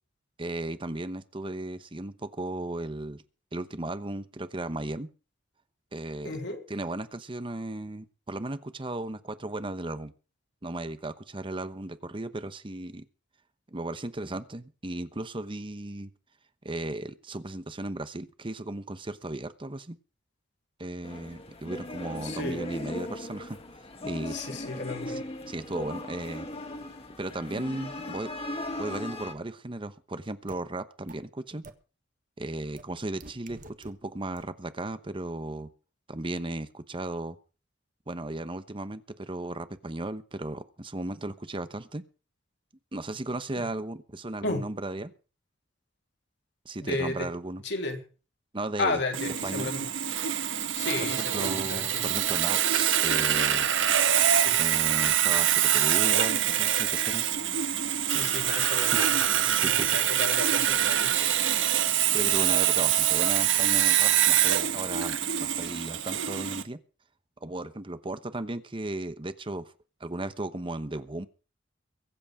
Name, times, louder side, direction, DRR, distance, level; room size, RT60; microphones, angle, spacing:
voice 1, 0.4-3.2 3.5-5.1 5.9-6.4 6.7-10.1 10.6-13.1 13.7-16.1 16.6-20.0 20.8-23.6 24.0-24.5 25.5-26.5 27.2-28.3 28.8-31.7 32.4-35.7 36.1-37.4 38.1-42.0 42.9-45.1 46.6-47.6 48.5-49.0 49.4-49.7 51.0-53.7 54.6-57.2 58.9-59.0 59.4-59.9 62.1-66.8 67.4-69.7 70.0-71.3, right 2 dB, 25° right, 12 dB, 1.0 m, -35 dB
voice 2, 6.2-6.6 22.2-22.7 24.3-25.2 43.6-43.7 44.4-44.7 46.8-47.3 47.6-48.0 48.8-49.9 50.7-52.1 54.3-54.6 58.1-61.3, left 2 dB, 65° left, 3 dB, 3.2 m, -34 dB
sound 1, 21.0-29.3, left 1 dB, 30° left, 1.9 m, -38 dB
sound 2, 30.5-30.6 31.1-31.2 31.6-31.7 32.8-32.9 33.2-33.9 34.4-34.5, right 3 dB, 45° right, 1.5 m, -45 dB
Sawing, 49.1-66.6, right 10 dB, 90° right, 1.3 m, -25 dB
23.0 x 8.2 x 4.9 m, 0.35 s
head